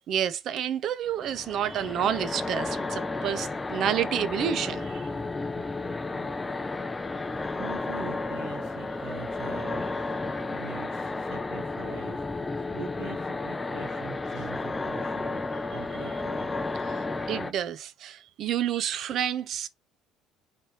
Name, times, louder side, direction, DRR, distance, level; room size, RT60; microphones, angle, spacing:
voice 1, 0.1-5.1 17.3-19.7, right 9 dB, 60° right, 0.6 m, -29 dB
sound 1, 1.2-17.5, left 3 dB, 20° left, 0.4 m, -32 dB
voice 2, 6.0-6.8 7.3-9.8 10.4-15.4 15.7-16.5, right 6 dB, 85° right, 1.2 m, -44 dB
4.3 x 3.3 x 3.0 m
supercardioid pair, 85°, 0 cm